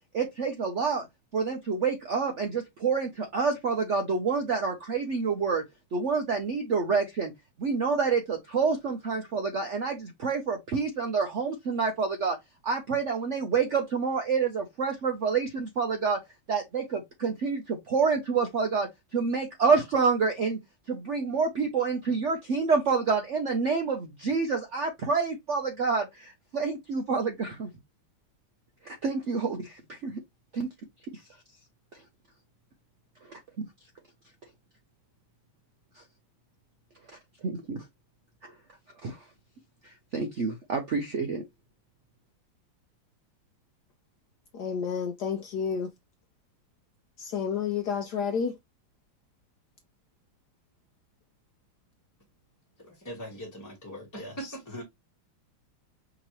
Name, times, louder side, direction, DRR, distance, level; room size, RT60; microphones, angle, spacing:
voice 1, 0.1-1.1 1.3-5.6 5.9-7.3 7.6-12.4 12.6-16.2 16.5-20.6 20.9-27.7 28.8-30.2 30.5-30.7 31.1-31.2 31.9-32.0 33.2-33.3 36.0-36.1 37.4-37.8 38.4-38.5 39.0-39.3 39.8-41.4, right 5 dB, 85° right, 0.6 m, -28 dB
voice 2, 44.5-45.9 47.2-48.6, left 6 dB, 65° left, 1.1 m, -30 dB
voice 3, 53.0-54.8, equal, 10° left, 1.0 m, -40 dB
5.1 x 2.9 x 3.0 m
omnidirectional pair, 2.2 m